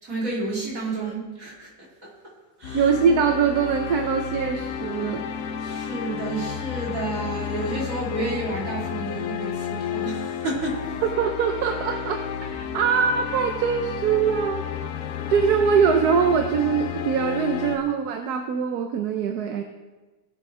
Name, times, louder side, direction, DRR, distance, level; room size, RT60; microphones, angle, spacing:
voice 1, 0.0-2.1 2.6-2.9 5.6-10.9, right 2 dB, 60° right, -5 dB, 3.5 m, -30 dB
sound 1, 2.6-17.8, left 8 dB, 80° left, 1.2 m, -32 dB
voice 2, 2.7-5.2 11.2-14.7 15.3-19.6, right 6 dB, 85° right, 5 dB, 1.3 m, -23 dB
19.0 x 8.0 x 3.3 m, 1.2 s
omnidirectional pair, 1.6 m